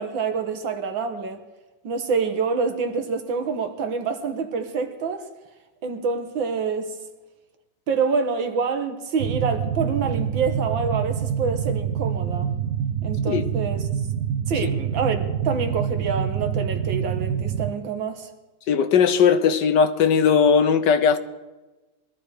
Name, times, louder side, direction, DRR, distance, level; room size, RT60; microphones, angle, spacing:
voice 1, 0.0-1.4 1.8-5.3 5.8-6.9 7.9-12.5 13.0-13.9 14.5-18.3, right 5 dB, 80° right, 7 dB, 2.1 m, -26 dB
sound 1, 9.2-17.7, right 8 dB, 60° right, 1.2 m, -26 dB
voice 2, 18.7-21.2, left 6 dB, 65° left, 9 dB, 1.4 m, -18 dB
21.5 x 13.5 x 4.9 m, 1.1 s
omnidirectional pair, 2.1 m